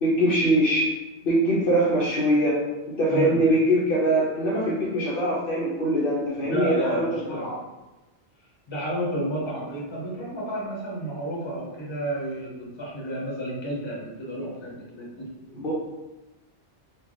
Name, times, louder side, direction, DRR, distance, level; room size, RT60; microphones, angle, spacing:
voice 1, 0.0-0.9 1.2-2.6 2.9-7.6 15.6-15.7, right 1 dB, 55° left, -6 dB, 0.8 m, -23 dB
voice 2, 3.1-3.4 6.4-7.5 8.7-15.6, right 1 dB, 25° left, -4 dB, 0.9 m, -31 dB
3.2 x 2.3 x 3.8 m, 1.1 s
omnidirectional pair, 1.2 m